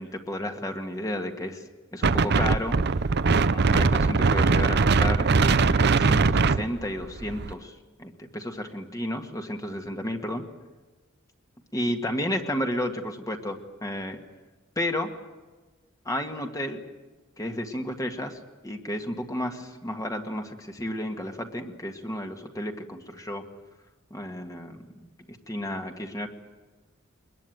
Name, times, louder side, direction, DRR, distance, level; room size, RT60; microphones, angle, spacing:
voice 1, 0.0-2.8 3.5-10.4 11.7-14.2 14.7-15.1 16.0-16.8 17.4-23.4 24.1-26.3, left 1 dB, 15° left, 4 dB, 1.7 m, -32 dB
Wind, 2.0-7.5, right 4 dB, 55° right, 0.7 m, -21 dB
22.5 x 21.0 x 9.2 m, 1.3 s
head